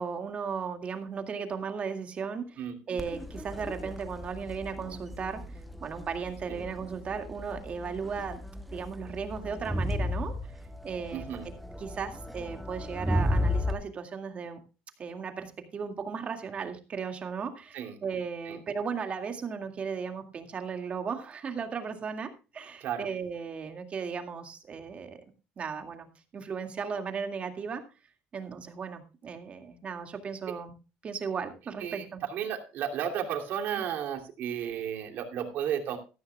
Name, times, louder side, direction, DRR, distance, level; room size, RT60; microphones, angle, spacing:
voice 1, 0.0-2.6 2.9-8.4 8.7-10.4 10.8-11.5 11.8-14.6 15.0-25.2 25.6-26.1 26.3-27.8 28.3-30.7 31.0-32.2 33.8-33.9, right 6 dB, 35° right, 6 dB, 2.1 m, -36 dB
Crowd, 3.0-13.7, left 1 dB, ahead, 1.0 m, -34 dB
voice 2, 11.1-11.5 17.7-17.9 18.5-18.6 22.8-23.1 31.8-36.0, right 9 dB, 65° right, 4 dB, 2.8 m, -33 dB
14.0 x 13.5 x 2.3 m, 0.31 s
cardioid pair, 125°, 4 cm